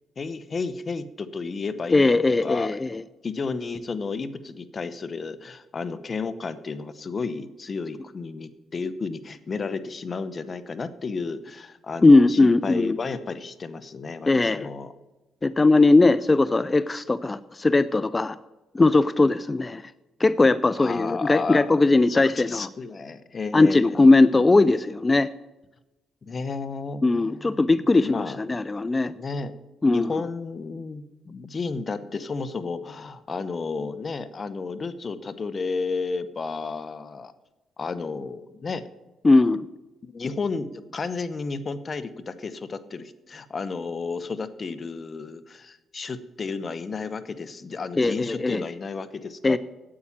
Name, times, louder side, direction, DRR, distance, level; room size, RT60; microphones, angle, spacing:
voice 1, 0.2-2.8 3.2-14.9 20.8-23.8 26.2-27.6 27.9-28.4 29.1-29.5 29.9-37.3 37.8-38.8 40.0-49.6, left 4 dB, 35° left, 13 dB, 0.9 m, -32 dB
voice 2, 1.9-3.0 12.0-13.0 14.3-14.7 15.4-18.4 18.7-19.8 20.2-22.7 23.5-25.3 27.0-29.1 29.8-30.2 39.2-39.7 48.0-48.6 49.4-49.6, left 3 dB, 20° left, 16 dB, 0.4 m, -19 dB
8.7 x 8.4 x 7.4 m, 1.1 s
cardioid pair, 90°, 0 cm